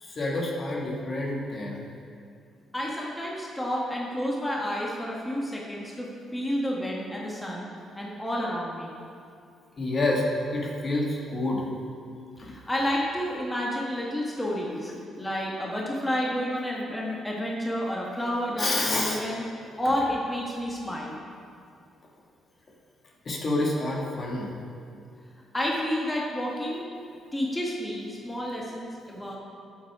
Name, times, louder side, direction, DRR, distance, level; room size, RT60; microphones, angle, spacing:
voice 1, 0.0-1.9 9.8-10.3 10.5-11.7 12.4-12.5 18.6-19.2 23.3-24.5, left 2 dB, 40° left, -2 dB, 1.9 m, -28 dB
voice 2, 2.7-7.7 7.9-9.0 12.4-14.9 15.2-19.4 19.8-21.2 25.5-26.9 27.3-29.4, equal, 10° left, -3 dB, 1.6 m, -30 dB
12.0 x 8.0 x 4.9 m, 2.4 s
cardioid pair, 90°, 0 cm